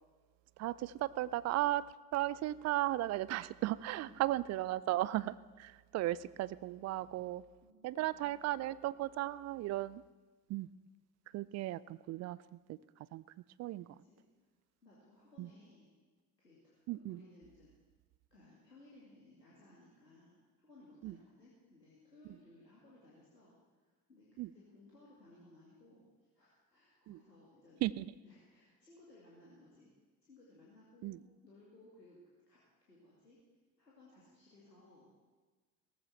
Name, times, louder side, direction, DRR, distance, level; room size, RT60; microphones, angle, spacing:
voice 1, 0.6-1.9 2.1-7.4 7.8-10.0 10.5-10.7 11.3-12.4 12.7-12.8 13.1-13.2 13.6-13.9 15.4-15.5 16.9-17.2 21.0-21.1 24.4-24.5 27.1-27.2 27.8-28.1 31.0-31.2, right 15 dB, 35° right, 19 dB, 0.4 m, -35 dB
voice 2, 3.8-4.6 7.6-8.6 14.0-14.5 14.8-15.9 16.4-17.7 18.3-20.4 20.6-27.8 28.2-29.9 30.2-32.2 32.5-33.4 33.8-35.1, left 2 dB, 90° left, -6 dB, 2.4 m, -61 dB
18.0 x 14.5 x 4.3 m, 1.4 s
figure-of-eight pair, 55°, 47 cm